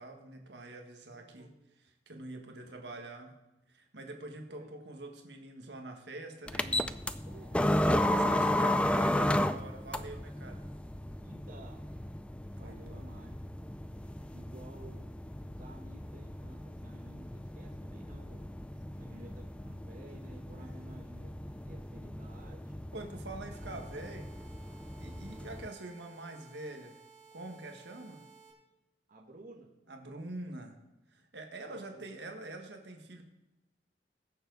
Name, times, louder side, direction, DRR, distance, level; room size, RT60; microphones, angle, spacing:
voice 1, 0.0-1.5 1.8-3.4 3.7-7.0 7.8-10.7 12.6-13.2 18.7-19.1 20.6-21.0 22.9-24.4 25.0-27.0 27.3-28.3 29.9-30.8 31.1-33.2, right 2 dB, 65° right, 3 dB, 1.6 m, -45 dB
voice 2, 1.1-1.6 2.7-3.0 4.5-4.7 7.2-7.7 8.1-8.4 11.2-11.8 12.6-13.4 14.3-18.5 19.0-22.7 29.1-29.7 31.7-32.0, right 1 dB, 45° right, -1 dB, 1.4 m, -54 dB
sound 1, 6.5-25.7, left 1 dB, 5° left, 0.3 m, -34 dB
sound 2, 23.5-28.5, right 6 dB, 15° right, 2.9 m, -57 dB
21.0 x 7.0 x 4.0 m, 0.98 s
head